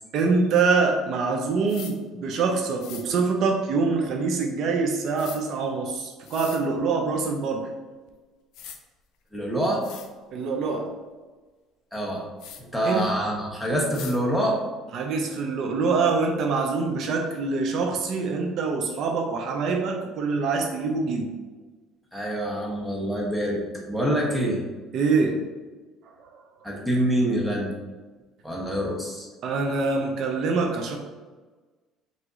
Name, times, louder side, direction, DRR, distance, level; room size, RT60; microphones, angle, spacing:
voice 1, 0.1-7.7 10.3-10.9 12.8-13.1 14.9-21.3 24.9-25.4 29.4-31.0, right 4 dB, 55° right, 2 dB, 0.5 m, -25 dB
sound 1, 1.7-1.9 2.8-3.0 5.2-5.4 6.2-6.6 8.1-8.2 8.5-8.8 9.4-9.5 9.8-10.1 12.4-12.6 13.9-14.2, left 8 dB, 70° left, 0.5 m, -40 dB
voice 2, 9.3-9.8 11.9-12.2 12.6-14.6 22.1-23.6 23.9-24.6 26.6-27.7 28.4-29.3, right 1 dB, ahead, -3 dB, 1.0 m, -25 dB
4.8 x 2.7 x 3.7 m, 1.3 s
cardioid pair, 135°, 0 cm